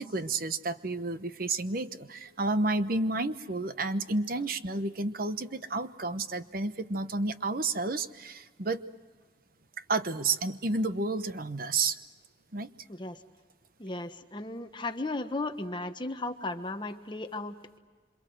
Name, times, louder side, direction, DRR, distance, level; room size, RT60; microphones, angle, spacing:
voice 1, 0.0-8.8 9.9-12.0 12.5-12.7, right 3 dB, 50° right, 12 dB, 1.0 m, -31 dB
voice 2, 13.8-17.8, left 2 dB, 25° left, 7 dB, 1.2 m, -35 dB
27.0 x 26.5 x 7.8 m, 1.4 s
head